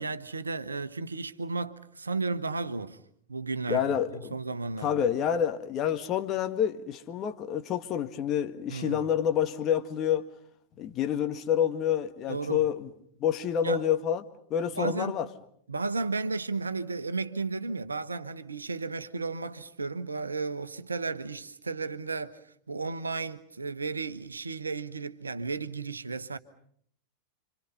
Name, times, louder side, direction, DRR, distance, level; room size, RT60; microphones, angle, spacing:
voice 1, 0.0-3.0 3.3-5.0 8.7-9.1 12.3-12.7 13.6-13.8 14.8-15.1 15.7-26.4, right 3 dB, 75° right, 1.1 m, -34 dB
voice 2, 3.7-4.3 4.8-10.2 10.8-12.9 13.2-14.2 14.5-15.3, left 9 dB, 30° left, 1.9 m, -28 dB
29.5 x 26.0 x 5.6 m
figure-of-eight pair, 90°, 0 cm